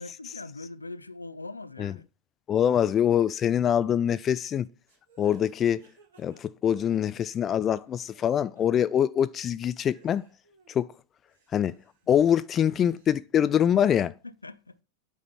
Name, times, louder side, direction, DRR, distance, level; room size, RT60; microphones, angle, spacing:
voice 1, 0.0-2.1 14.2-14.8, left 2 dB, 80° left, 0.5 m, -41 dB
voice 2, 2.5-4.7 5.2-5.8 6.2-10.3 10.7-10.9 11.5-11.8 12.1-14.1, left 9 dB, 25° left, 0.4 m, -24 dB
sound 1, 4.9-7.4 7.7-8.3 8.5-8.6 9.2-9.3 9.8-10.8 11.2-13.1, right 4 dB, 60° right, 4.2 m, -59 dB
8.7 x 4.9 x 5.7 m
figure-of-eight pair, 90°, 0 cm